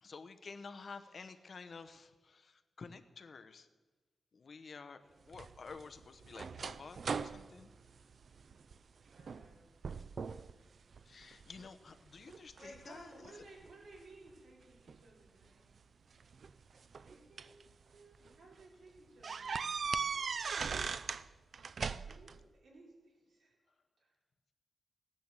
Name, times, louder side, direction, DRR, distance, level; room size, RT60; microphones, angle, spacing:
voice 1, 0.0-3.7 4.3-5.0 5.3-7.7 11.0-13.3 19.6-19.7, left 4 dB, 50° left, 10 dB, 0.9 m, -51 dB
sound 1, 5.3-8.8 9.2-9.5 9.8-10.5 10.9-11.7 12.3-13.7 14.9-15.0 16.2-17.6 18.1-18.3 18.6-18.7 19.2-21.3 21.5-22.4, right 5 dB, 55° right, 0.4 m, -39 dB
voice 2, 9.1-9.7 12.5-15.6 16.1-16.3 16.9-20.8 22.0-23.6 24.0-24.1, right 2 dB, 80° right, -2 dB, 4.8 m, -59 dB
16.5 x 10.5 x 7.6 m, 1.3 s
wide cardioid pair, 140°, 0 cm